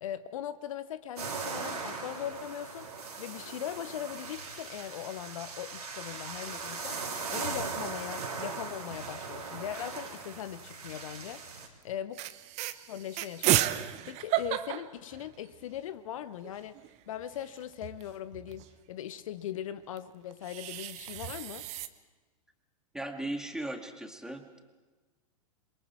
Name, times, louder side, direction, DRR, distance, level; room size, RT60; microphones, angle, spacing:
voice 1, 0.0-2.9 3.2-7.0 7.3-11.4 11.8-12.2 12.9-13.7 14.1-16.8 17.1-21.7, left 10 dB, 60° left, 14 dB, 0.8 m, -40 dB
sound 1, 1.2-11.7, right 4 dB, 85° right, 3.6 m, -39 dB
sound 2, 6.5-7.2 7.6-7.7 7.9-8.5 9.4-10.6 11.2-11.4 11.8-11.9 12.1-15.8 16.2-16.3 16.4-18.7 20.0-21.9, right 14 dB, 35° right, 1.0 m, -34 dB
voice 2, 22.9-24.6, right 1 dB, 5° right, 4 dB, 2.0 m, -37 dB
28.0 x 22.5 x 4.6 m, 1.3 s
figure-of-eight pair, 105°, 19 cm